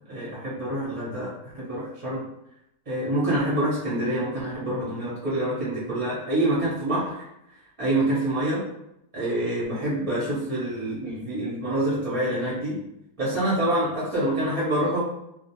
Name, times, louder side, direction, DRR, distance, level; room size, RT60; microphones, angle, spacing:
voice 1, 0.1-2.2 2.9-7.3 7.5-8.6 9.1-12.8 13.2-15.0, right 1 dB, 40° right, -7 dB, 0.5 m, -26 dB
2.4 x 2.1 x 2.7 m, 0.81 s
omnidirectional pair, 1.5 m